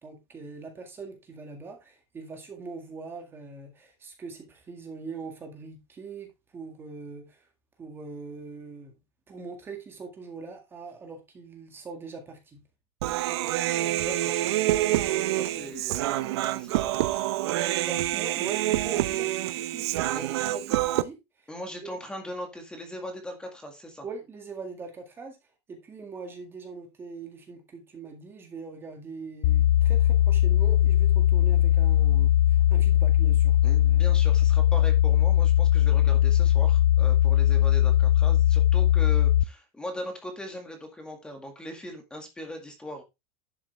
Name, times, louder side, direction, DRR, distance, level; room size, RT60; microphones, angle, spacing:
voice 1, 0.0-7.5 7.8-8.9 9.3-12.6 17.8-20.1 20.4-21.5 21.8-22.0 24.0-25.4 25.7-33.6, right 4 dB, 15° right, 1.9 m, -42 dB
Human voice, 13.0-21.0, right 15 dB, 65° right, 0.9 m, -27 dB
voice 2, 13.8-14.5 15.3-17.2 20.1-20.4 21.5-24.0 33.6-43.0, equal, 5° left, 2.0 m, -40 dB
sound 1, 29.4-39.4, left 12 dB, 50° left, 0.5 m, -20 dB
11.0 x 7.6 x 3.4 m
supercardioid pair, 170°, 15 cm